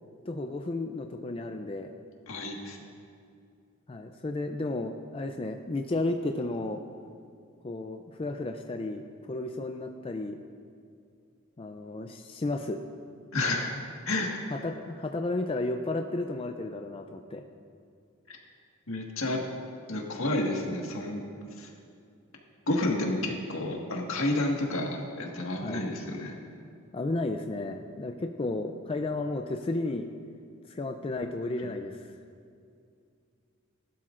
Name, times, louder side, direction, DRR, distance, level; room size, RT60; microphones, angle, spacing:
voice 1, 0.2-1.9 3.9-6.8 7.6-10.4 11.6-12.8 14.5-17.4 25.6-25.8 26.9-30.1 30.6-32.1, left 2 dB, 25° left, 5 dB, 0.4 m, -33 dB
voice 2, 2.3-2.8 13.3-13.7 14.1-14.4 18.9-19.4 19.9-21.2 21.6-21.7 22.7-26.3, left 2 dB, 75° left, 0 dB, 1.7 m, -30 dB
19.0 x 12.0 x 2.5 m, 2.4 s
head